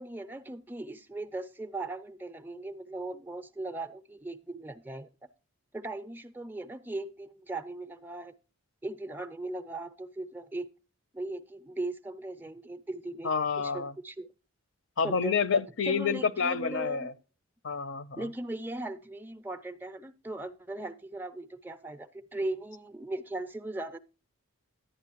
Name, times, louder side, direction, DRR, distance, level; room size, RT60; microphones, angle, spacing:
voice 1, 0.0-5.1 5.7-8.3 8.8-10.7 11.1-13.3 13.6-14.3 15.0-15.4 15.9-17.1 18.2-24.0, right 2 dB, 10° right, 0.4 m, -38 dB
voice 2, 13.2-13.9 15.0-17.1 17.6-18.2, left 5 dB, 55° left, 0.6 m, -28 dB
11.0 x 9.0 x 2.9 m
head